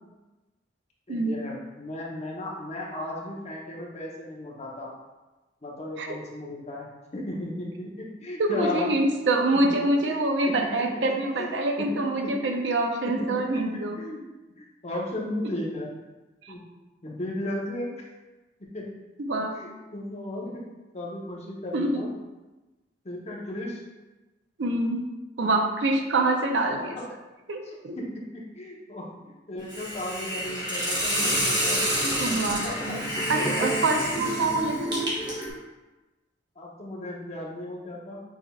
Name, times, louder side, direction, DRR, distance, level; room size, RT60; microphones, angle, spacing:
voice 1, 1.1-4.9 5.6-9.0 9.5-9.8 10.1-10.2 10.4-11.5 11.8-12.3 13.0-14.3 14.6-15.9 16.5-16.6 17.0-18.0 18.7-18.9 19.5-20.6 20.9-22.1 23.0-23.8 25.4-25.6 27.6-31.8 32.2-32.4 32.6-33.0 34.1-34.3 36.6-38.2, left 1 dB, 35° left, -3 dB, 0.9 m, -35 dB
voice 2, 8.4-14.0 19.2-19.6 21.7-22.1 24.6-25.1 25.4-26.9 27.5-28.0 32.2-32.6 33.3-35.2, right 2 dB, 75° right, 4 dB, 0.5 m, -25 dB
Hiss, 29.7-35.5, equal, 25° right, 1.1 m, -28 dB
6.2 x 3.4 x 2.3 m, 1.1 s
head